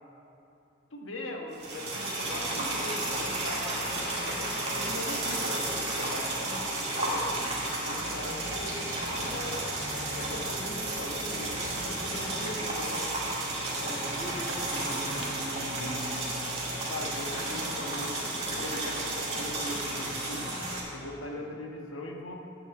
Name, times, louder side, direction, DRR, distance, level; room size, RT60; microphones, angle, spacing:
voice 1, 0.9-5.7 6.0-7.4 7.8-9.6 9.9-13.1 16.9-18.2 18.5-20.6 20.9-22.3, left 1 dB, 90° left, 1 dB, 1.5 m, -40 dB
sound 1, 1.5-20.8, right 2 dB, 30° right, 2.0 m, -32 dB
sound 2, 8.0-12.5, equal, 45° right, 1.1 m, -46 dB
voice 2, 13.8-16.2, equal, 5° right, -8 dB, 2.6 m, -39 dB
9.7 x 6.8 x 7.9 m, 2.8 s
head